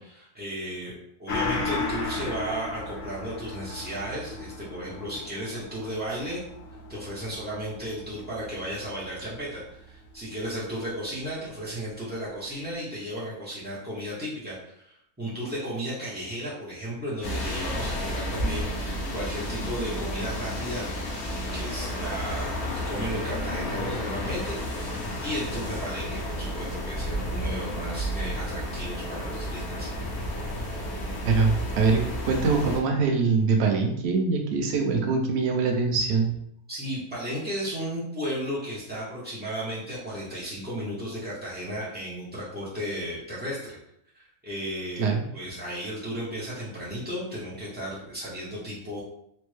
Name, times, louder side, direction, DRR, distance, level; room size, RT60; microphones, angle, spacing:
voice 1, 0.0-6.4 6.9-20.8 21.5-29.9 36.7-43.8 44.1-49.0, equal, 15° right, -7 dB, 0.3 m, -34 dB
Gong, 1.3-10.2 10.6-10.7, left 3 dB, 65° left, 1.0 m, -36 dB
sound 1, 17.2-32.8, equal, 85° left, 1.2 m, -31 dB
voice 2, 31.2-36.3 45.0-45.2, right 4 dB, 60° right, 2 dB, 0.7 m, -23 dB
4.2 x 2.1 x 3.1 m, 0.73 s
omnidirectional pair, 1.6 m